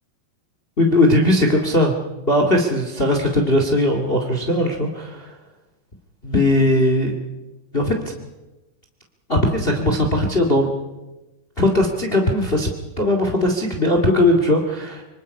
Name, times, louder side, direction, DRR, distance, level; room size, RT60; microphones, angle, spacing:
voice 1, 0.8-1.9 2.3-5.3 6.2-7.1 7.7-7.9 9.3-10.7 11.6-12.7 13.0-15.0, left 1 dB, 20° left, 3 dB, 2.0 m, -18 dB
25.5 x 25.0 x 5.5 m, 1.1 s
omnidirectional pair, 3.4 m